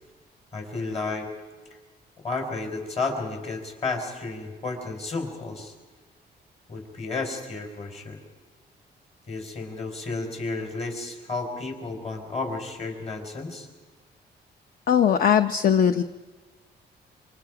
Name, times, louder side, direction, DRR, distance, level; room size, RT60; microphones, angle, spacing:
voice 1, 0.5-1.3 2.2-5.7 6.7-8.2 9.3-13.7, left 3 dB, 35° left, 3 dB, 4.9 m, -32 dB
voice 2, 14.9-16.0, left 8 dB, 55° left, 9 dB, 0.7 m, -19 dB
27.5 x 26.5 x 5.0 m, 1.3 s
cardioid pair, 170°, 18 cm